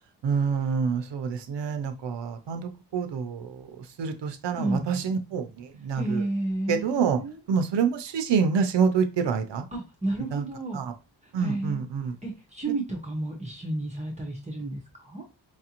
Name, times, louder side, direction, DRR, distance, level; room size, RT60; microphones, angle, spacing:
voice 1, 0.2-3.7 4.0-6.2 6.7-7.2 7.5-9.6 10.3-10.4 10.7-10.9 11.3-12.1, right 6 dB, 80° right, 7 dB, 0.6 m, -27 dB
voice 2, 4.6-5.0 5.9-7.4 9.7-10.8 11.2-11.8 12.2-15.2, right 2 dB, 15° right, -2 dB, 0.7 m, -31 dB
4.6 x 2.5 x 2.8 m, 0.27 s
wide cardioid pair, 180°, 43 cm